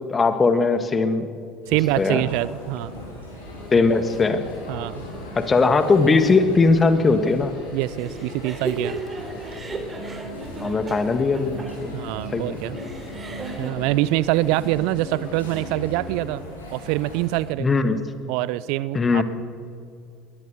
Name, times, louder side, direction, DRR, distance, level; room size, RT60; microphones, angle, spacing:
voice 1, 0.1-1.3 2.0-2.2 3.7-4.4 5.3-7.5 10.6-12.0 12.3-12.6 17.6-18.0 18.9-19.2, left 4 dB, 25° left, 10 dB, 1.7 m, -19 dB
sound 1, 1.6-17.4, left 1 dB, 80° left, 5.9 m, -38 dB
voice 2, 1.7-2.9 4.7-5.1 7.7-9.0 11.9-12.8 13.6-16.4 16.7-17.7 18.3-19.2, right 17 dB, 55° right, 19 dB, 0.4 m, -24 dB
sound 2, 3.4-16.6, right 2 dB, 50° left, 4.8 m, -43 dB
sound 3, 8.0-13.7, right 3 dB, 25° right, 3.2 m, -35 dB
21.0 x 18.5 x 7.0 m, 2.3 s
figure-of-eight pair, 65°, 0 cm